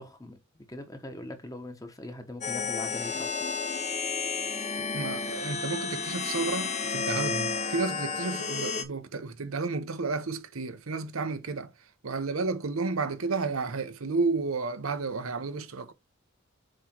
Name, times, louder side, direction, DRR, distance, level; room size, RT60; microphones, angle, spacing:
voice 1, 0.0-3.3, left 1 dB, 15° left, 1.2 m, -41 dB
sound 1, 2.4-8.8, left 4 dB, 35° left, 0.9 m, -31 dB
voice 2, 4.8-11.7 12.0-15.9, right 4 dB, 80° right, 0.9 m, -32 dB
7.5 x 3.2 x 4.5 m
head